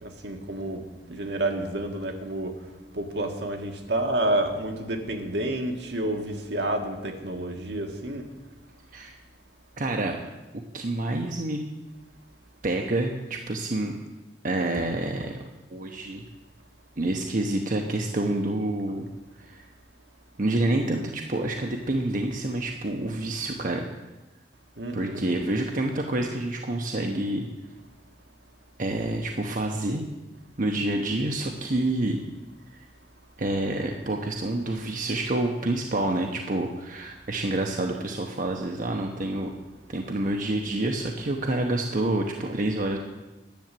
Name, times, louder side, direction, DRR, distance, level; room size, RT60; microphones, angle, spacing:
voice 1, 0.0-0.8 1.1-2.5 2.9-8.2 24.8-25.2, right 1 dB, 70° right, 4 dB, 1.5 m, -29 dB
voice 2, 9.8-10.2 10.7-11.6 12.6-14.0 14.4-15.3 15.7-16.2 17.0-19.1 19.4-19.7 20.4-23.9 24.9-27.5 28.8-30.0 30.6-32.2 32.7-32.9 33.4-39.5 39.9-43.0, right 2 dB, 50° right, 2 dB, 0.9 m, -28 dB
10.5 x 7.1 x 9.1 m, 1.1 s
head